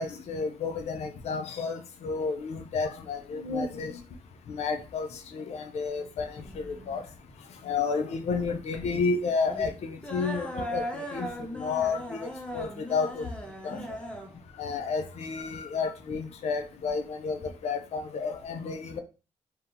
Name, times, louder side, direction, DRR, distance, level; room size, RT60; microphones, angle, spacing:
voice 1, 0.0-4.0 4.5-7.0 7.6-11.3 11.5-13.3 13.6-14.0 14.6-19.0, left 4 dB, 60° left, 0.4 m, -31 dB
sound 1, 6.2-16.2, equal, 10° left, 0.6 m, -39 dB
2.8 x 2.1 x 2.5 m
cardioid pair, 70°, 13 cm